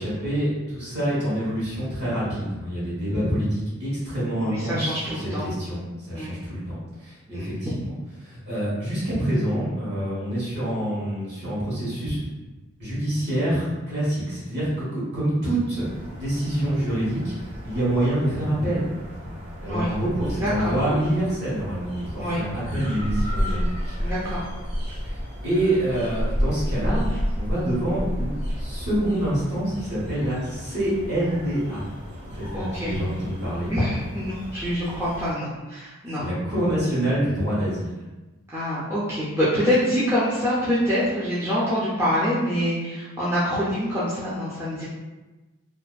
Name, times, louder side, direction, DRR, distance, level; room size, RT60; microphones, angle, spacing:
voice 1, 0.0-7.9 8.2-12.2 12.8-15.9 16.2-17.3 17.6-18.9 19.2-19.4 19.6-23.9 25.0-25.1 25.4-27.1 27.3-31.8 32.3-33.7 36.2-37.9, right 1 dB, 50° right, -9 dB, 1.2 m, -26 dB
voice 2, 4.4-5.4 6.1-6.3 7.3-7.5 19.7-19.9 20.3-20.7 22.2-22.4 24.0-24.4 32.5-32.9 33.7-36.2 38.5-44.8, equal, 10° right, -11 dB, 0.4 m, -25 dB
sound 1, 15.8-35.3, equal, 30° right, 1.1 m, -32 dB
2.5 x 2.5 x 2.2 m, 1.1 s
head